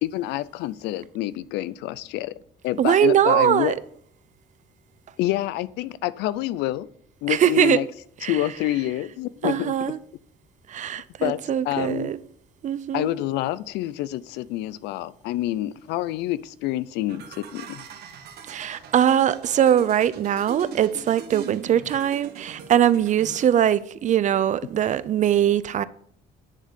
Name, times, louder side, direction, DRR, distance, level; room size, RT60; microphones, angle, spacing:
voice 1, 0.0-2.3 2.6-3.7 5.2-6.9 7.2-7.9 8.3-9.7 11.2-12.1 12.9-17.8, left 15 dB, 90° left, 0.5 m, -27 dB
voice 2, 2.8-3.7 7.3-7.8 8.2-8.4 9.4-10.0 10.7-12.2 12.6-13.1 18.5-25.8, right 10 dB, 45° right, 0.6 m, -21 dB
sound 1, 17.1-23.5, right 6 dB, 70° right, 1.5 m, -40 dB
10.0 x 3.8 x 7.3 m
cardioid pair, 110°, 17 cm